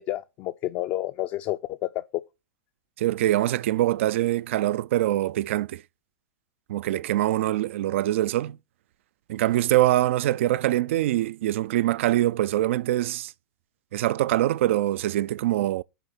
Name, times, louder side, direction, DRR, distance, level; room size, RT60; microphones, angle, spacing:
voice 1, 0.0-2.2, left 15 dB, 35° left, 0.4 m, -30 dB
voice 2, 3.0-5.8 6.7-8.6 9.3-13.3 13.9-15.8, right 14 dB, 60° right, 0.4 m, -24 dB
10.0 x 3.5 x 6.6 m
hypercardioid pair, 110°, 8 cm